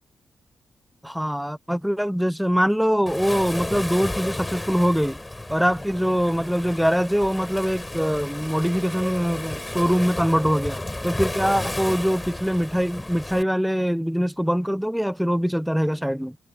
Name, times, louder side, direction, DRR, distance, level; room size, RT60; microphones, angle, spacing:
voice 1, 1.0-5.2 5.5-16.4, equal, ahead, 0.9 m, -23 dB
Waves surf, 3.1-13.4, left 1 dB, 20° left, 4.5 m, -33 dB
supercardioid pair, 50°, 0 cm